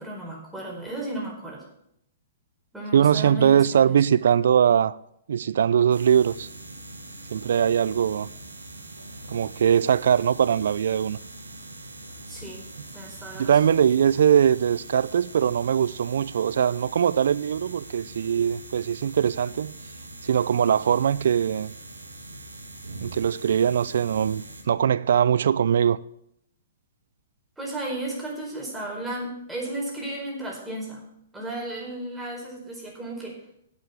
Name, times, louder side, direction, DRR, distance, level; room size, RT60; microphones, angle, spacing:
voice 1, 0.0-1.6 2.7-3.9 12.3-12.6 12.9-13.5 27.6-31.0 31.3-33.4, right 1 dB, 5° right, 4.5 m, -34 dB
voice 2, 2.9-5.0 5.3-6.5 7.3-8.3 9.3-11.2 13.4-19.8 20.2-21.7 23.0-26.0, right 8 dB, 65° right, 0.4 m, -21 dB
sound 1, 5.9-24.6, right 2 dB, 90° right, 1.7 m, -42 dB
8.3 x 8.2 x 8.2 m
hypercardioid pair, 120°, 0 cm